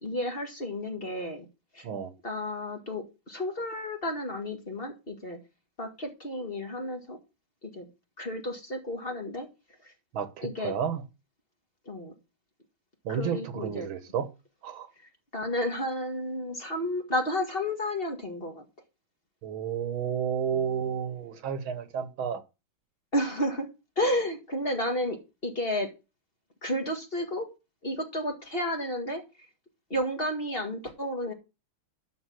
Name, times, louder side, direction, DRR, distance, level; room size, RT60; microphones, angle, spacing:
voice 1, 0.0-1.5 1.7-1.9 2.2-5.4 5.8-7.2 7.6-7.9 8.2-9.5 9.8-9.9 10.4-10.7 11.9-12.1 13.1-13.9 15.3-18.6 20.5-20.6 23.1-23.7 24.0-25.9 26.6-27.5 27.8-29.2 29.9-31.3, left 1 dB, 30° left, 2.1 m, -32 dB
voice 2, 10.1-11.0 13.1-14.3 14.6-14.9 19.4-22.4, right 7 dB, 80° right, 2.0 m, -31 dB
12.0 x 5.5 x 6.3 m
omnidirectional pair, 2.2 m